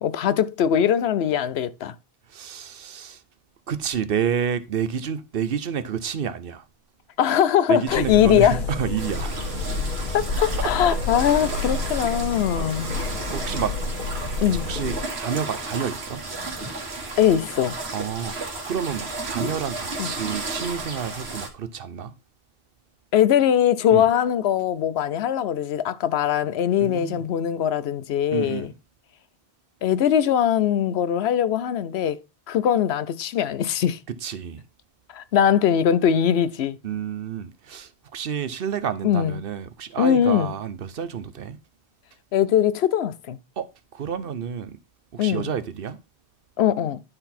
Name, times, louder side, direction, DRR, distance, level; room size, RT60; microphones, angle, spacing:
voice 1, 0.0-1.9 7.2-8.6 10.1-12.9 14.4-14.7 17.2-17.8 20.0-20.1 23.1-28.7 29.8-32.2 32.5-34.0 35.1-36.8 39.0-39.4 40.0-40.5 42.3-43.4 45.2-45.5 46.6-47.0, left 9 dB, 85° left, 0.9 m, -21 dB
voice 2, 2.3-3.2 3.7-6.6 7.7-9.6 10.5-11.0 12.2-12.3 12.5-13.7 14.5-16.2 17.9-18.4 18.6-22.1 23.9-24.1 26.8-27.2 28.3-28.7 34.1-34.6 36.8-41.6 43.6-44.8 45.1-46.0, right 7 dB, 65° right, 0.9 m, -29 dB
sound 1, 7.9-15.0, left 3 dB, 50° left, 1.9 m, -29 dB
sound 2, 9.0-21.5, right 3 dB, 85° right, 1.9 m, -33 dB
11.0 x 4.0 x 4.2 m
omnidirectional pair, 1.1 m